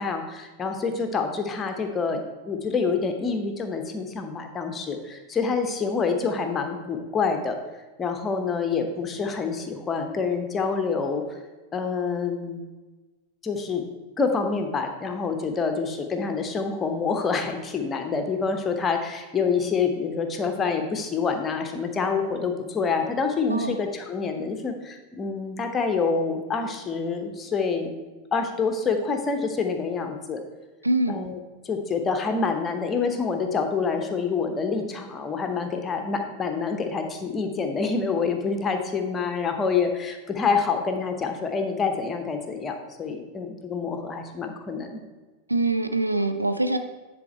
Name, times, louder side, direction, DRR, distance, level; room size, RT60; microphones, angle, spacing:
voice 1, 0.0-2.2 2.5-7.6 8.0-11.2 11.7-12.7 13.4-13.8 14.2-27.9 28.3-30.4 31.1-31.4 31.6-45.0, left 5 dB, 20° left, 5 dB, 0.9 m, -27 dB
voice 2, 30.8-31.2 45.5-46.8, right 2 dB, 85° right, 8 dB, 0.5 m, -24 dB
9.7 x 4.2 x 4.4 m, 1.2 s
figure-of-eight pair, 90°, 0 cm